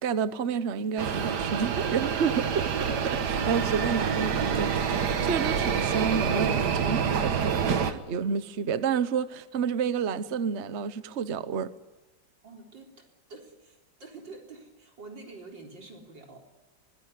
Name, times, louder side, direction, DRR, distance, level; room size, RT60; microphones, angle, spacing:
voice 1, 0.0-11.7, right 6 dB, 45° right, 1.1 m, -30 dB
sound 1, 1.0-7.9, right 6 dB, 70° right, 1.9 m, -27 dB
voice 2, 12.4-16.6, right 3 dB, 90° right, 4.8 m, -47 dB
24.5 x 20.0 x 9.6 m
omnidirectional pair, 1.9 m